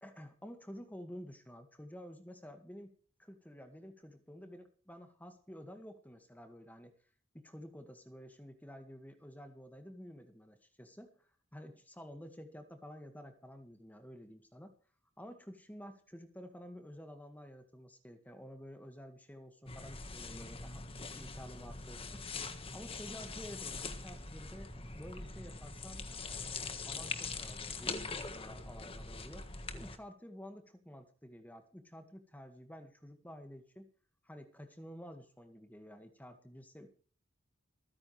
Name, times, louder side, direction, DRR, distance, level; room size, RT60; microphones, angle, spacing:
voice 1, 0.0-2.9 3.2-6.9 7.3-14.7 15.2-22.3 22.7-26.1 26.6-33.9 34.2-36.9, equal, 10° left, 6 dB, 1.9 m, -51 dB
sound 1, 19.7-30.0, left 4 dB, 25° left, 1.5 m, -43 dB
25.5 x 9.8 x 3.4 m, 0.42 s
head